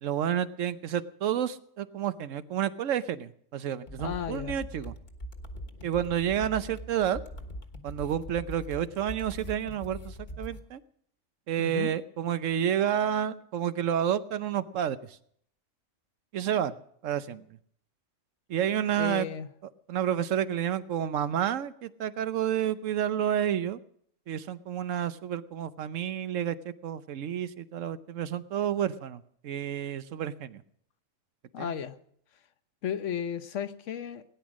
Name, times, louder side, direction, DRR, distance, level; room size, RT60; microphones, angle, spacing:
voice 1, 0.0-4.9 5.8-7.2 7.8-10.8 11.5-15.0 16.3-16.7 17.0-17.4 18.5-19.3 19.9-23.8 24.3-30.6 31.6-31.7, right 9 dB, 75° right, 13 dB, 1.1 m, -30 dB
sound 1, 3.9-10.6, equal, 40° left, 1.4 m, -42 dB
voice 2, 4.0-4.5 11.6-11.9 19.0-19.5 31.5-32.0 32.8-34.2, left 8 dB, 70° left, 11 dB, 1.2 m, -34 dB
18.0 x 10.5 x 6.3 m, 0.66 s
omnidirectional pair, 1.3 m